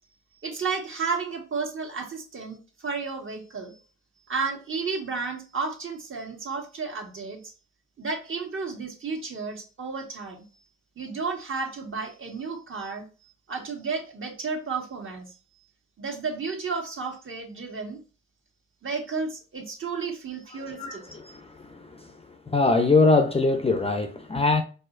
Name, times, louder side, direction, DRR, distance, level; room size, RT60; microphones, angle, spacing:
voice 1, 0.4-3.8 4.3-7.4 8.0-10.4 11.0-15.3 16.0-18.0 18.8-21.0, right 4 dB, 45° right, 1.7 m, -32 dB
voice 2, 20.8-22.1 22.5-24.6, left 3 dB, 20° left, 0.6 m, -23 dB
4.7 x 4.1 x 2.5 m
cardioid pair, 90°, 30 cm